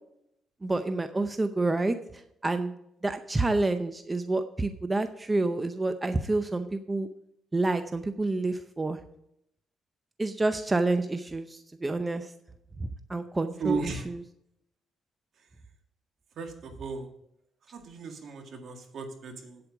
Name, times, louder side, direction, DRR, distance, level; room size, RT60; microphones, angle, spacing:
voice 1, 0.6-2.7 3.0-7.1 7.5-9.0 10.2-12.3 12.8-14.2, right 2 dB, 20° right, 9 dB, 0.6 m, -28 dB
voice 2, 13.6-14.1 16.4-17.1 17.7-19.6, right 5 dB, 65° right, 4 dB, 1.9 m, -35 dB
8.7 x 8.1 x 4.9 m, 0.76 s
cardioid pair, 90°, 0 cm